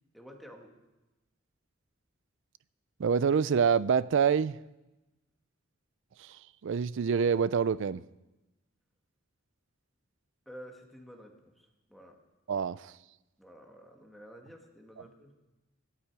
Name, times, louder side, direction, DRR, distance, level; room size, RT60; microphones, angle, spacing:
voice 1, 0.1-0.7 10.5-12.2 13.4-15.3, equal, ahead, 1.8 m, -51 dB
voice 2, 3.0-4.6 6.2-6.3 6.6-8.0 12.5-12.9, right 6 dB, 65° right, 0.4 m, -26 dB
17.5 x 12.0 x 4.8 m
head